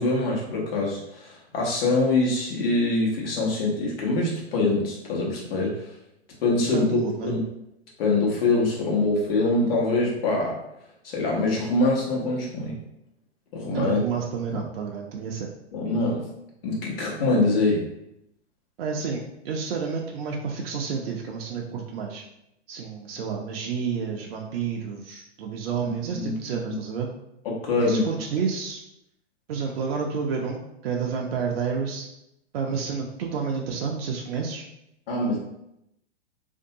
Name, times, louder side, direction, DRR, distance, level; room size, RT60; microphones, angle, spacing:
voice 1, 0.0-5.9 6.4-6.9 7.2-7.4 8.0-10.6 11.0-12.8 13.5-14.0 15.7-16.3 16.6-17.9 25.8-26.3 26.6-26.7 27.4-28.1 35.1-35.4, left 2 dB, 60° left, -2 dB, 1.0 m, -24 dB
voice 2, 6.7-7.3 13.7-15.5 18.8-22.2 22.7-27.1 27.8-28.8 29.5-32.1 32.5-34.6, right 6 dB, 65° right, 0 dB, 0.5 m, -30 dB
2.6 x 2.2 x 2.7 m, 0.82 s
hypercardioid pair, 115°, 33 cm